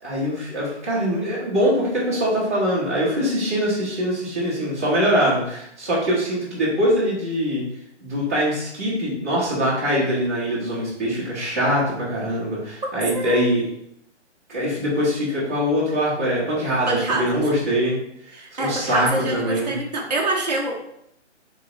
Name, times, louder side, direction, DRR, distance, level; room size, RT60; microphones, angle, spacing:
voice 1, 0.0-7.6 8.0-13.6 14.5-18.0 18.6-19.7, equal, 10° right, -11 dB, 0.9 m, -23 dB
voice 2, 12.8-13.5 16.9-17.4 18.3-20.7, right 2 dB, 35° right, -2 dB, 0.7 m, -26 dB
3.8 x 2.9 x 4.1 m, 0.75 s
hypercardioid pair, 175°, 36 cm